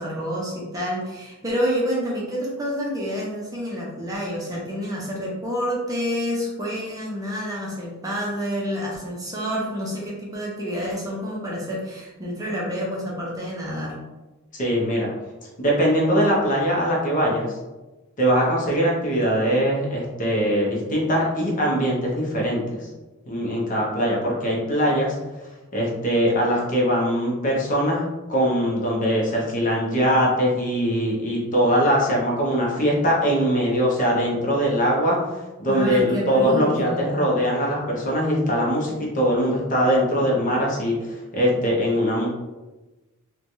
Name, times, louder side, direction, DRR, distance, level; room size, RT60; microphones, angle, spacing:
voice 1, 0.0-14.0 35.6-37.3, equal, 15° right, -4 dB, 0.5 m, -28 dB
voice 2, 14.6-15.1 15.6-17.5 18.2-22.8 23.3-25.1 25.7-28.0 28.3-35.2 35.6-42.3, equal, 40° left, -3 dB, 0.7 m, -21 dB
3.1 x 2.2 x 2.6 m, 1.1 s
head